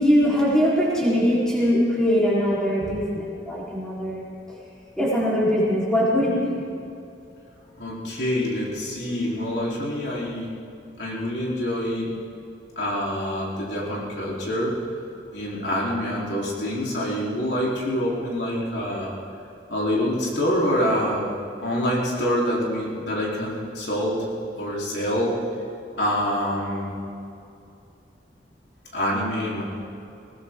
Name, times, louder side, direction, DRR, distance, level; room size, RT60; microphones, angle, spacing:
voice 1, 0.0-4.3 5.0-6.5, equal, 5° left, -7 dB, 3.8 m, -21 dB
voice 2, 7.8-10.5 11.0-12.1 12.8-14.8 15.3-19.1 19.7-21.3 21.6-24.2 24.5-25.3 26.0-26.9 28.9-29.6, equal, 70° left, -5 dB, 3.7 m, -26 dB
20.5 x 18.5 x 3.7 m, 2.6 s
head